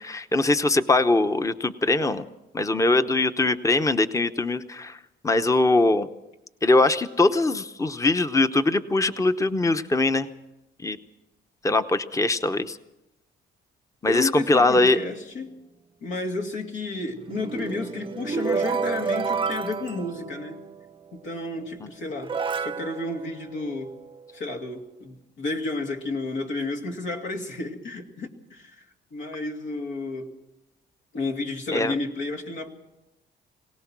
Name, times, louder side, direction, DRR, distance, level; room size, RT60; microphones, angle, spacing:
voice 1, 0.0-2.3 2.5-5.0 5.2-6.1 6.6-10.3 10.8-11.0 11.6-12.8 14.0-15.0 21.8-21.9 31.7-31.9, left 2 dB, 15° left, 10 dB, 0.9 m, -22 dB
voice 2, 14.1-15.5 16.0-20.6 21.1-23.9 24.3-28.8 29.1-30.3 31.1-32.7, left 3 dB, 75° left, 2 dB, 2.6 m, -32 dB
sound 1, 17.1-20.9 21.7-21.8 22.2-24.2, right 5 dB, 25° right, 0.7 m, -30 dB
24.5 x 18.0 x 6.1 m, 0.93 s
cardioid pair, 90°, 20 cm